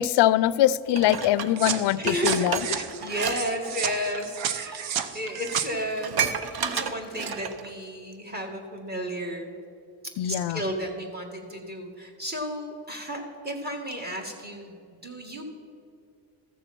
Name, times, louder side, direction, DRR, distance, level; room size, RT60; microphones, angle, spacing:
voice 1, 0.0-2.7 10.2-10.6, left 13 dB, 60° left, 19 dB, 0.5 m, -23 dB
Dishes pots and pans, 0.9-3.4 3.7-3.9 4.7-4.8 5.2-5.3 5.5-7.7 8.1-8.2, right 6 dB, 55° right, 0.9 m, -31 dB
sound 1, 1.6-5.7, right 9 dB, 80° right, 0.8 m, -32 dB
voice 2, 2.0-6.3 6.7-9.5 10.0-15.4, equal, 20° right, 3 dB, 1.9 m, -33 dB
14.5 x 6.8 x 6.0 m, 2.5 s
cardioid pair, 85°, 46 cm